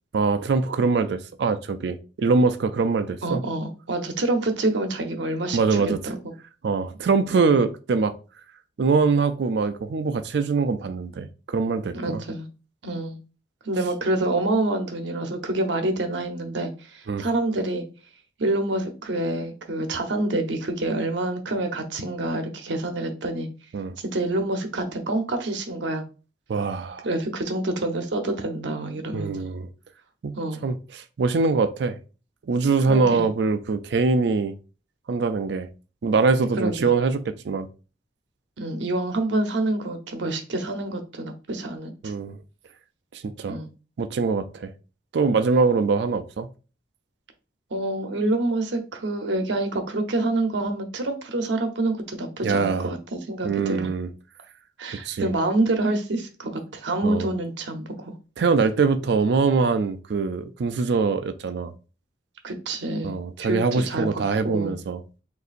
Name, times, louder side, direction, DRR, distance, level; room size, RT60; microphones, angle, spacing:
voice 1, 0.1-3.4 5.5-6.0 6.6-8.2 8.8-12.2 17.1-17.2 23.7-23.9 26.5-27.1 29.1-29.7 30.2-30.3 30.6-32.0 32.5-34.5 35.1-35.7 36.0-37.7 42.0-42.4 43.1-43.6 44.0-44.7 45.1-46.5 52.4-52.9 53.4-54.1 55.0-55.3 57.0-57.3 58.4-61.7 63.0-65.0, right 4 dB, 65° right, 0.4 m, -23 dB
voice 2, 3.2-6.3 7.3-7.5 11.9-12.4 12.8-13.2 13.6-17.8 18.4-23.5 24.0-26.1 27.0-29.4 30.3-30.7 32.9-33.3 36.6-36.9 38.6-42.1 43.5-43.7 47.7-53.9 54.8-58.1 62.4-63.1 63.4-64.7, right 2 dB, 85° right, 0.8 m, -27 dB
6.5 x 2.7 x 2.5 m
head